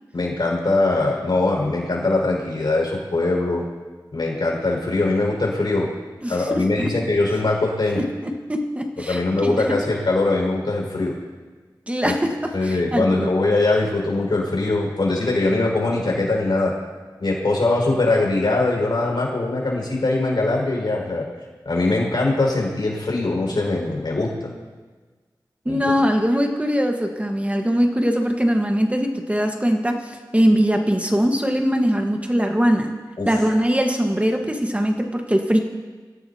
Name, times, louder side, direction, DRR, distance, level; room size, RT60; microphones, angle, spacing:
voice 1, 0.1-3.7 4.1-5.9 6.3-8.0 9.1-11.2 12.0-12.1 12.5-16.7 17.2-21.2 21.7-24.5 25.7-25.8 33.2-33.3, left 2 dB, 65° left, -2 dB, 5.2 m, -21 dB
voice 2, 6.2-6.9 7.9-9.8 11.9-13.3 25.6-32.9 33.3-35.6, equal, 15° right, 3 dB, 1.4 m, -21 dB
24.0 x 16.0 x 2.9 m, 1.4 s
wide cardioid pair, 55°, 8 cm